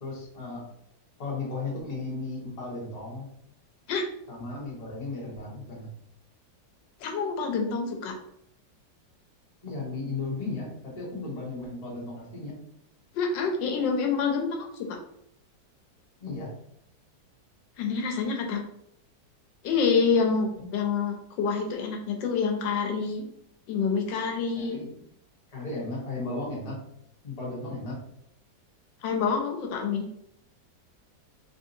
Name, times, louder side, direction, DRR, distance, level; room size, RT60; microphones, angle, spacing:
voice 1, 0.0-0.6 1.2-3.3 4.3-5.9 9.6-12.6 16.2-16.5 20.5-20.7 24.6-24.9 25.5-26.8 27.2-28.0, left 3 dB, 30° left, -4 dB, 0.8 m, -35 dB
voice 2, 7.0-8.1 13.1-14.9 17.8-18.6 19.6-23.2 23.7-24.8 29.0-30.1, left 5 dB, 85° left, 2 dB, 1.3 m, -27 dB
3.9 x 2.6 x 2.6 m, 0.73 s
omnidirectional pair, 2.0 m